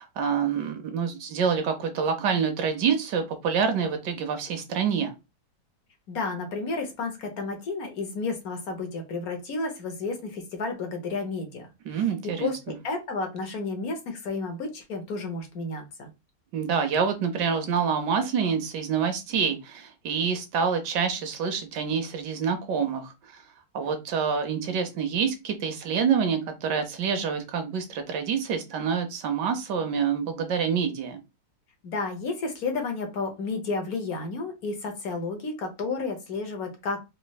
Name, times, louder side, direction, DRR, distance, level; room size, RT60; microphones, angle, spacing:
voice 1, 0.0-5.1 11.9-12.7 16.5-23.4 23.7-31.2, right 6 dB, 75° right, 1.4 m, -27 dB
voice 2, 6.1-16.1 31.8-37.0, left 3 dB, 60° left, 1.3 m, -32 dB
4.2 x 3.0 x 2.3 m
omnidirectional pair, 1.9 m